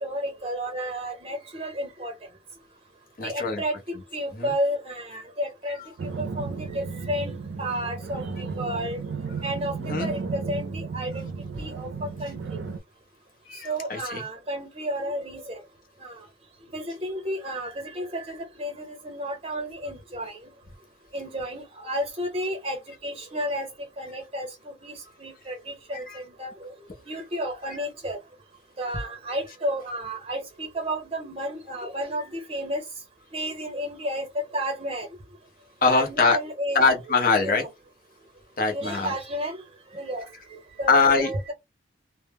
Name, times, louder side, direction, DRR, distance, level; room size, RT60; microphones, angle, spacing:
voice 1, 0.0-2.1 3.2-3.8 4.1-8.2 8.6-9.0 9.4-11.3 11.5-11.9 12.2-12.6 13.6-15.6 16.0-16.1 16.7-20.4 21.1-23.7 24.0-24.9 25.2-26.1 26.4-26.5 27.1-28.2 28.8-32.8 33.3-35.1 35.9-36.8 37.4-37.7 38.7-39.6 39.9-40.2 40.8-41.5, equal, 30° right, 0.8 m, -31 dB
voice 2, 3.2-3.6 4.4-4.5 9.8-10.1 13.5-14.3 26.1-26.2 35.8-36.4 36.7-37.6 38.6-39.1 40.9-41.3, left 4 dB, 50° left, 0.6 m, -22 dB
sound 1, 6.0-12.8, right 4 dB, 70° right, 0.4 m, -34 dB
2.1 x 2.0 x 3.4 m
head